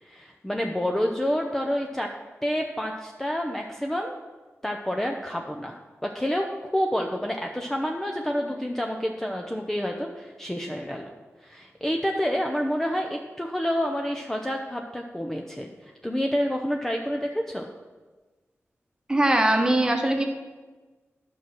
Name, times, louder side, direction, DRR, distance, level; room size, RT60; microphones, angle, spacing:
voice 1, 0.0-2.1 2.4-4.1 4.6-11.1 11.4-17.7, equal, 5° left, 2 dB, 0.6 m, -28 dB
voice 2, 19.1-20.3, right 1 dB, 15° right, 3 dB, 1.3 m, -21 dB
11.0 x 6.3 x 6.0 m, 1.3 s
wide cardioid pair, 125°, 5 cm